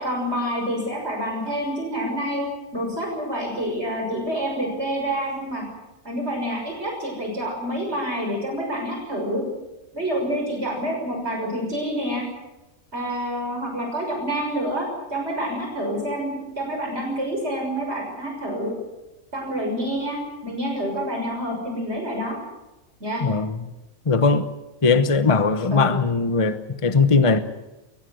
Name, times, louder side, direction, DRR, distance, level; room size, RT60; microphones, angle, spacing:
voice 1, 0.0-2.4 2.7-5.6 6.0-9.4 9.9-12.2 12.9-18.7 19.3-22.4 23.0-23.2 25.7-25.9, equal, 50° right, 1 dB, 6.7 m, -27 dB
voice 2, 23.2-23.6 24.1-24.5 24.8-27.4, left 4 dB, 25° left, 10 dB, 1.0 m, -19 dB
22.5 x 20.5 x 7.9 m, 1.0 s
omnidirectional pair, 1.4 m